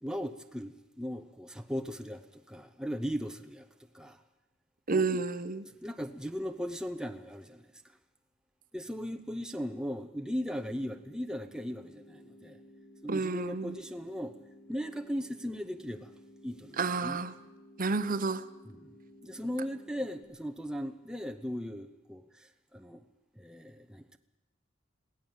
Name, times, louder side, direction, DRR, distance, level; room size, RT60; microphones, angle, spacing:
voice 1, 0.0-3.7 3.9-4.2 4.9-5.2 5.6-8.0 8.7-12.6 13.0-14.4 14.7-16.1 16.4-17.2 18.6-19.0 19.2-23.0 23.3-24.2, equal, 5° right, 0.9 m, -38 dB
voice 2, 4.9-5.6 13.1-13.7 16.8-17.3 17.8-18.4, right 4 dB, 45° right, 0.9 m, -30 dB
sound 1, 10.2-20.2, equal, 55° left, 4.2 m, -55 dB
22.0 x 17.0 x 7.5 m
head